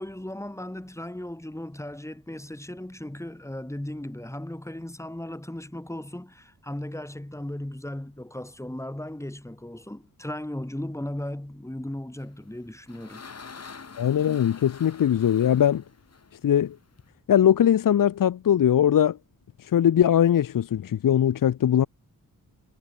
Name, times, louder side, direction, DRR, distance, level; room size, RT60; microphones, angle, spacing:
voice 1, 0.0-13.2, left 1 dB, 10° left, 7.4 m, -36 dB
sound 1, 12.4-17.1, left 5 dB, 45° left, 4.1 m, -46 dB
voice 2, 14.0-15.8 16.4-16.8 17.3-19.2 19.6-21.9, left 10 dB, 65° left, 0.8 m, -21 dB
wide cardioid pair, 110°, 35 cm